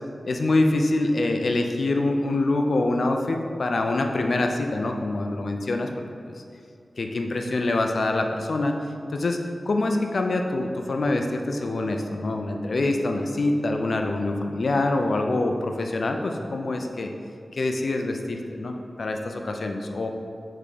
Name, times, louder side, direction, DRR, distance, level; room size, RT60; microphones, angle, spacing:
voice 1, 0.3-5.9 7.0-8.7 9.1-9.4 9.6-17.1 17.5-20.1, left 2 dB, 65° left, 4 dB, 0.5 m, -25 dB
6.7 x 3.6 x 5.0 m, 2.4 s
wide cardioid pair, 70°, 0 cm